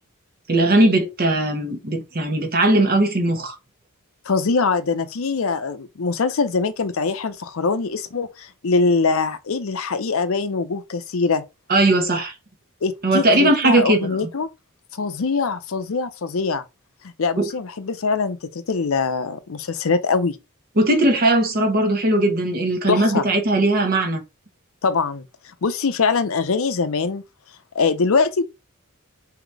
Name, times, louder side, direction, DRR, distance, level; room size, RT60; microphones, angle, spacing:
voice 1, 0.5-3.6 11.7-12.3 13.0-14.1 17.4-17.5 20.8-24.2, right 1 dB, 45° right, 1.1 m, -19 dB
voice 2, 4.3-11.4 12.8-14.5 14.9-16.6 17.0-20.4 22.9-23.2 24.8-27.2 27.7-28.4, left 4 dB, 65° left, 0.6 m, -23 dB
4.0 x 2.9 x 4.6 m
head